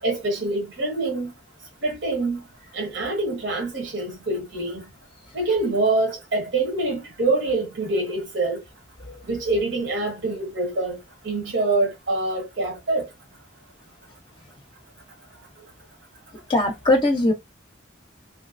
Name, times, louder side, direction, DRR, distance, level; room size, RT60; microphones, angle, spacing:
voice 1, 0.0-1.3 1.8-2.4 2.7-4.8 5.3-8.6 9.3-11.0 11.2-13.1, right 2 dB, 65° right, 1.1 m, -25 dB
voice 2, 16.5-17.3, left 1 dB, 25° left, 0.6 m, -20 dB
3.1 x 2.8 x 2.5 m
head